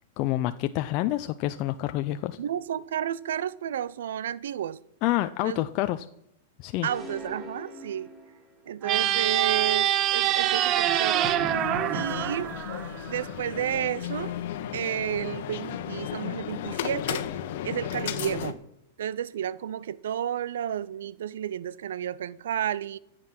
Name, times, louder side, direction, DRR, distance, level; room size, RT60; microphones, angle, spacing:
voice 1, 0.2-2.4 5.0-6.1 6.6-6.9, left 15 dB, 45° left, 0.5 m, -28 dB
voice 2, 2.4-4.8 5.4-5.7 6.8-8.1 8.7-11.3 11.9-12.5 13.1-14.3 14.7-17.2 17.6-18.6 19.0-23.0, right 10 dB, 80° right, 0.5 m, -31 dB
sound 1, 6.8-8.8, left 1 dB, 20° right, 3.0 m, -43 dB
sound 2, 8.8-13.3, right 11 dB, 35° right, 0.8 m, -25 dB
sound 3, 11.2-18.5, left 11 dB, 65° left, 1.2 m, -34 dB
14.5 x 7.6 x 5.9 m
hypercardioid pair, 135°, 0 cm